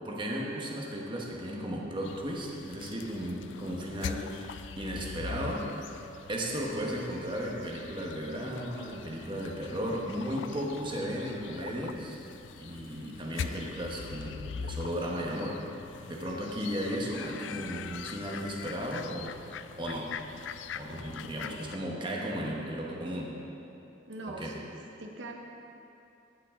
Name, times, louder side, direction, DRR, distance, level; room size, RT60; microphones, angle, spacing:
voice 1, 0.0-6.0 6.3-12.2 12.6-15.6 16.0-19.3 19.8-20.2 20.7-23.3 24.3-24.5, equal, 25° right, -2 dB, 1.2 m, -35 dB
sound 1, 2.0-21.8, left 6 dB, 80° left, 0.3 m, -43 dB
voice 2, 24.1-24.7 25.0-25.3, right 2 dB, 85° right, 1 dB, 0.8 m, -41 dB
16.0 x 5.7 x 3.7 m, 2.8 s
head